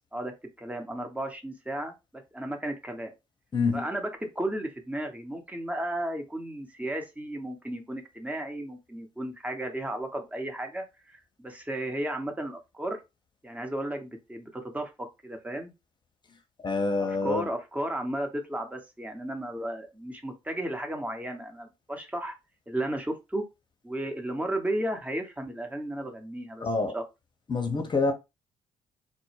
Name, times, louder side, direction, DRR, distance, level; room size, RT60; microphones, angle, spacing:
voice 1, 0.6-1.9 2.3-3.1 3.7-13.0 13.4-15.7 17.0-22.3 22.7-23.4 23.8-26.7 26.9-27.0, right 1 dB, 10° right, 0.8 m, -34 dB
voice 2, 3.5-3.9 16.6-17.5 26.6-26.9 27.5-28.1, left 3 dB, 30° left, 0.7 m, -26 dB
2.1 x 2.0 x 3.2 m
figure-of-eight pair, 45°, 15 cm